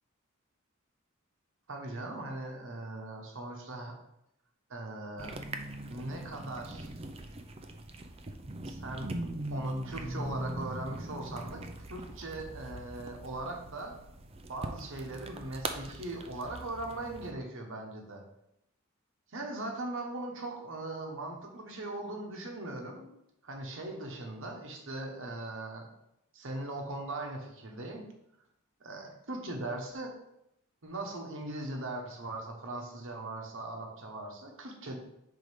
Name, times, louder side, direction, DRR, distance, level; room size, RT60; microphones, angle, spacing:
voice 1, 1.7-3.9 4.7-5.4 5.9-6.9 8.6-9.1 9.5-11.6 11.9-13.9 14.5-18.2 19.3-23.1 23.4-25.9 26.3-28.1 28.8-30.1 30.8-35.0, right 2 dB, 65° right, 1 dB, 1.2 m, -39 dB
sound 1, 5.2-17.3, right 1 dB, 30° right, 0.5 m, -41 dB
5.1 x 3.9 x 5.0 m, 0.81 s
head